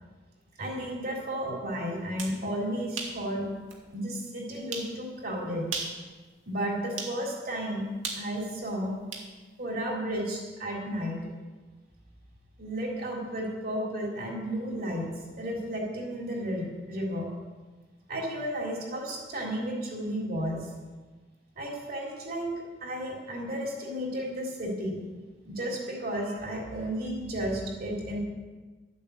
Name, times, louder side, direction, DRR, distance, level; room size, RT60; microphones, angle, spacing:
voice 1, 0.6-3.5 3.9-5.7 6.5-7.9 8.2-9.0 9.6-11.2 12.6-15.1 15.4-17.3 18.1-20.7 21.6-22.5 22.8-25.0 25.4-28.2, equal, 50° right, -2 dB, 3.8 m, -33 dB
sound 1, 2.0-2.4 3.0-3.2 3.7-3.8 4.7-4.9 5.6-6.0 7.0-7.2 8.0-9.3, right 4 dB, 80° right, 2.4 m, -35 dB
13.0 x 8.5 x 8.4 m, 1.3 s
head